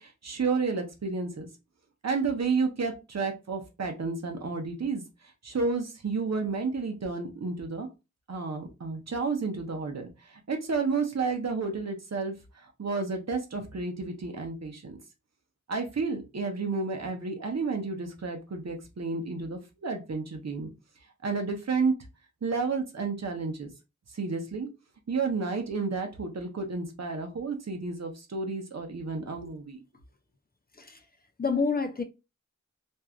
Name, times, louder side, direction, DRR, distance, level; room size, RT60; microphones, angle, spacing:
voice 1, 0.0-1.5 2.0-5.0 5.4-7.9 8.3-15.0 15.7-20.7 21.2-21.9 22.4-23.7 24.1-24.7 25.1-29.8, right 4 dB, 60° right, 0.8 m, -31 dB
voice 2, 30.7-31.0 31.4-32.0, left 4 dB, 30° left, 0.5 m, -28 dB
3.1 x 2.6 x 2.3 m
wide cardioid pair, 75°, 30 cm